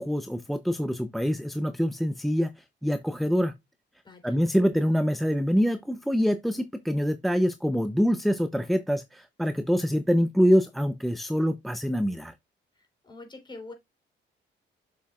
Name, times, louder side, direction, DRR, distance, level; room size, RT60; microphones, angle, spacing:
voice 1, 0.0-2.5 2.8-3.5 4.2-12.3, equal, ahead, 0.6 m, -25 dB
voice 2, 4.0-4.4 12.8-13.7, left 3 dB, 20° left, 3.5 m, -45 dB
7.4 x 6.8 x 2.3 m
cardioid pair, 90°, 20 cm